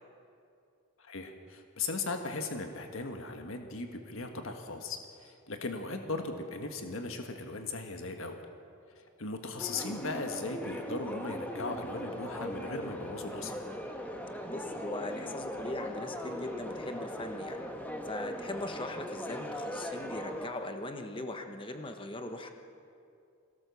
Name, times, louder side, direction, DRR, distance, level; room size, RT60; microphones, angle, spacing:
voice 1, 1.0-8.4 8.9-13.6, left 3 dB, 65° left, 5 dB, 1.6 m, -38 dB
sound 1, 9.6-20.5, equal, 10° left, 1.4 m, -39 dB
voice 2, 14.5-17.6 18.0-22.5, left 2 dB, 25° left, 6 dB, 1.2 m, -40 dB
23.5 x 17.0 x 7.1 m, 2.5 s
head